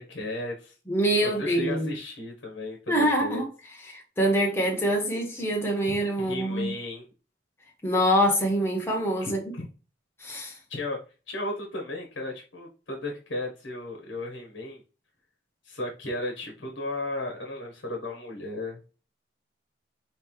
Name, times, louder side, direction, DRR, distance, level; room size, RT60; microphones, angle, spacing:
voice 1, 0.0-0.7 1.2-3.4 6.2-7.0 9.2-9.7 10.7-11.0 11.3-14.8 15.6-18.8, left 2 dB, 75° left, 1.2 m, -35 dB
voice 2, 0.9-1.9 2.9-3.5 3.8-6.7 7.8-9.4 10.2-10.6, equal, 15° left, 1.0 m, -25 dB
5.3 x 3.2 x 3.1 m
head